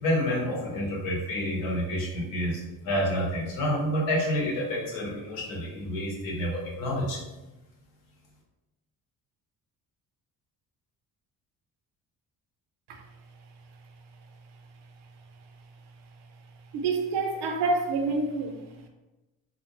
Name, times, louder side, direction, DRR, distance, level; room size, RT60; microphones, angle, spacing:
voice 1, 0.0-7.2, equal, 75° left, -2 dB, 0.9 m, -29 dB
voice 2, 16.7-18.6, right 3 dB, 60° right, 4 dB, 0.6 m, -27 dB
2.5 x 2.0 x 2.9 m, 1.1 s
hypercardioid pair, 50°, 47 cm